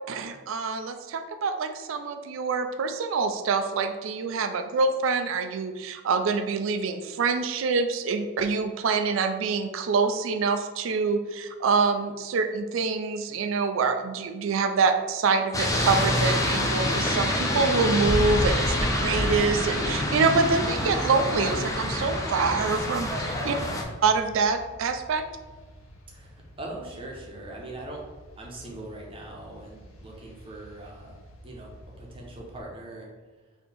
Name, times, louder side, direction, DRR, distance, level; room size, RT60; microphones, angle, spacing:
voice 1, 0.1-23.6 24.0-25.2, right 4 dB, 70° right, 7 dB, 0.4 m, -26 dB
sound 1, 15.5-23.8, left 1 dB, 15° left, 0.4 m, -26 dB
sound 2, 19.4-32.6, equal, 85° left, 0.8 m, -49 dB
voice 2, 23.4-23.7 26.1-28.0 28.4-31.2 31.4-33.1, right 1 dB, 25° right, -2 dB, 0.8 m, -41 dB
4.2 x 2.8 x 3.4 m, 1.3 s
head